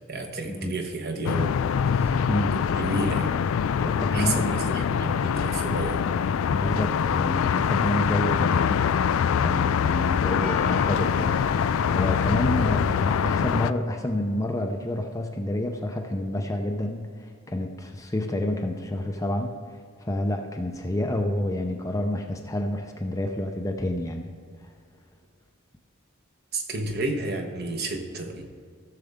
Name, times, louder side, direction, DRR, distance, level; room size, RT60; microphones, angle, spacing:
voice 1, 0.1-1.6 1.9-2.3 2.7-3.3 4.1-6.0 26.5-28.4, right 2 dB, 45° right, 3 dB, 1.1 m, -31 dB
sound 1, 1.2-13.7, left 7 dB, 60° left, 0.3 m, -24 dB
voice 2, 2.3-2.6 3.8-4.6 6.5-8.9 9.4-19.6 20.0-24.3, left 1 dB, 15° left, 3 dB, 0.6 m, -29 dB
Percussion, 10.4-14.8 15.0-15.1, left 5 dB, 85° left, 1.6 m, -40 dB
15.5 x 6.6 x 3.6 m, 2.1 s
head